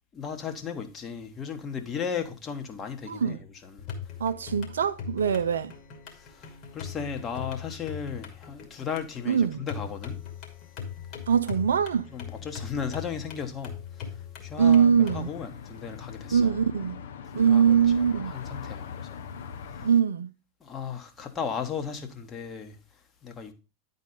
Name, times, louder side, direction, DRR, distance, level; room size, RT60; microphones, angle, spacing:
voice 1, 0.1-3.9 5.3-5.4 6.1-10.3 12.1-16.6 17.2-19.3 19.7-19.9 20.6-23.5, left 6 dB, 25° left, 1.3 m, -36 dB
voice 2, 3.1-3.4 4.2-5.7 9.3-9.6 11.3-12.1 14.6-15.3 16.3-17.0 17.3-18.3 19.8-20.3, right 7 dB, 65° right, 0.4 m, -22 dB
sound 1, 3.8-15.3, left 7 dB, 40° left, 2.3 m, -40 dB
sound 2, 14.6-19.9, left 7 dB, 60° left, 0.9 m, -41 dB
10.5 x 4.1 x 5.1 m
figure-of-eight pair, 90°, 0 cm